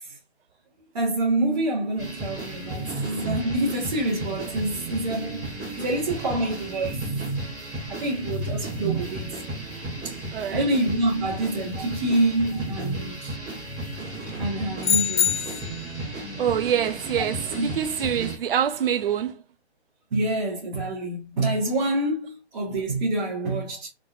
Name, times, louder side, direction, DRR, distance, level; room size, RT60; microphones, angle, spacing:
voice 1, 0.9-7.2 7.9-9.3 10.0-10.1 10.5-13.4 14.3-15.3 17.6-17.7 20.1-23.9, right 1 dB, 40° right, 1.5 m, -27 dB
sound 1, 2.0-18.4, right 2 dB, 15° right, 1.5 m, -33 dB
voice 2, 10.3-10.7 11.8-11.9 16.4-19.4, right 9 dB, 55° right, 0.6 m, -26 dB
sound 2, 14.8-15.9, left 9 dB, 90° left, 0.5 m, -24 dB
3.8 x 3.8 x 2.6 m
hypercardioid pair, 165°, 33 cm